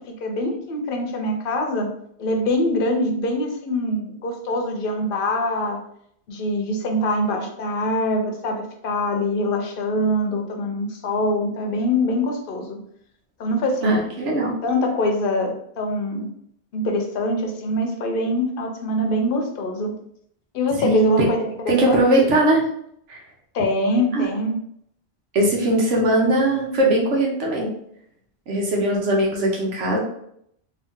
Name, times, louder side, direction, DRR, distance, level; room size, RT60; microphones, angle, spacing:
voice 1, 0.1-1.9 2.2-5.8 6.3-12.8 13.4-14.0 14.6-16.3 16.7-19.9 20.5-22.0 23.5-24.6, left 1 dB, 55° left, 3 dB, 0.8 m, -24 dB
voice 2, 13.8-14.5 20.8-21.3 21.7-22.7 23.1-23.2 24.1-24.3 25.3-27.7 28.5-30.0, right 1 dB, 85° right, -1 dB, 1.2 m, -20 dB
2.8 x 2.7 x 3.5 m, 0.70 s
omnidirectional pair, 1.2 m